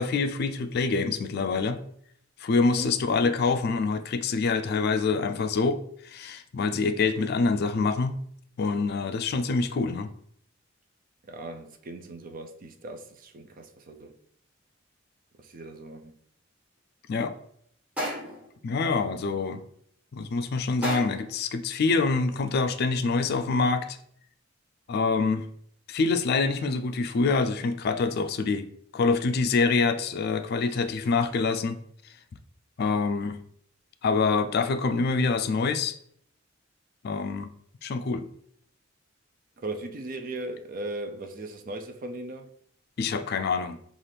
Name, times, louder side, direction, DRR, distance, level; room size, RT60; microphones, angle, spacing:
voice 1, 0.0-1.8 2.4-8.2 8.6-10.1 17.1-17.3 18.6-19.6 20.1-24.0 24.9-25.5 25.9-28.7 28.9-31.8 32.8-33.4 34.0-35.9 37.0-37.5 37.8-38.3 43.0-43.8, left 4 dB, 50° left, 0.3 m, -26 dB
voice 2, 11.3-14.1 15.4-16.1 39.6-42.5, right 2 dB, 45° right, 0.5 m, -38 dB
sound 1, 18.0-18.5 20.8-21.3, equal, 5° right, 1.3 m, -32 dB
5.6 x 2.5 x 3.3 m
head